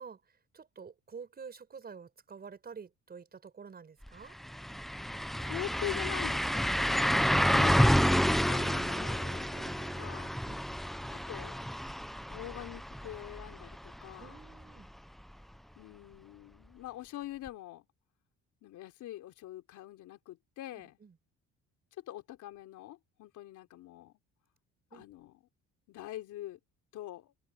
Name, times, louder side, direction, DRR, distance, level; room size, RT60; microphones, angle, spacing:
voice 1, 0.0-4.4 9.5-10.1 10.4-10.6 14.2-14.9 20.7-21.2 24.9-25.0, right 6 dB, 30° right, 5.4 m, -49 dB
sound 1, 4.0-4.1 4.4-14.2 14.6-14.7 17.5-17.6, equal, ahead, 0.7 m, -29 dB
voice 2, 5.0-10.3 11.1-11.6 12.3-14.4 15.8-17.8 18.6-21.0 22.0-24.1 24.9-25.3 25.9-26.6 26.9-27.3, left 14 dB, 75° left, 3.5 m, -44 dB
cardioid pair, 125°, 31 cm